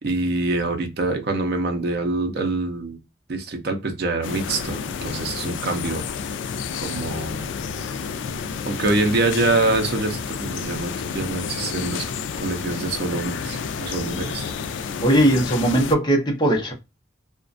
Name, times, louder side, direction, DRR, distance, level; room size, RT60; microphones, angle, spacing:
voice 1, 0.0-3.0 3.3-6.0 6.8-7.5 8.7-12.1 12.4-14.5, right 2 dB, 55° right, 0.5 m, -25 dB
sound 1, 4.2-16.0, left 6 dB, 75° left, 0.3 m, -30 dB
voice 2, 15.0-16.7, right 1 dB, 20° left, 0.7 m, -19 dB
2.4 x 2.1 x 2.4 m
head